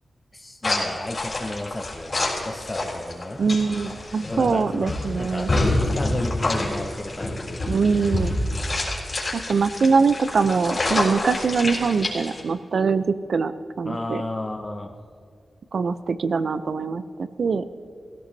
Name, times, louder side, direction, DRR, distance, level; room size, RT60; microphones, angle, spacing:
voice 1, 0.3-3.4 4.2-5.5 5.8-7.6 13.8-15.0, left 1 dB, 20° left, 3 dB, 0.6 m, -33 dB
sound 1, 0.6-12.4, left 2 dB, 35° left, 4.0 m, -27 dB
voice 2, 3.4-5.5 7.7-8.3 9.3-13.0 13.3-13.5 13.8-14.2 15.7-17.6, right 5 dB, 60° right, 12 dB, 0.6 m, -23 dB
17.0 x 16.5 x 2.8 m, 2.4 s
wide cardioid pair, 125°, 0 cm